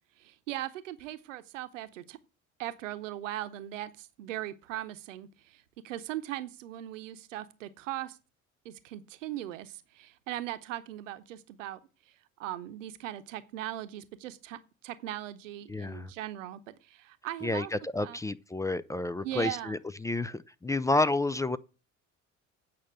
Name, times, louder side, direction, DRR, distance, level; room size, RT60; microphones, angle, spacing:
voice 1, 0.2-2.2 2.6-8.2 8.6-11.8 12.4-17.7 18.0-18.2 19.2-19.8, right 13 dB, 70° right, 0.9 m, -39 dB
voice 2, 15.7-16.1 17.4-21.6, left 2 dB, 10° left, 0.4 m, -30 dB
8.6 x 5.7 x 7.8 m
figure-of-eight pair, 55°, 39 cm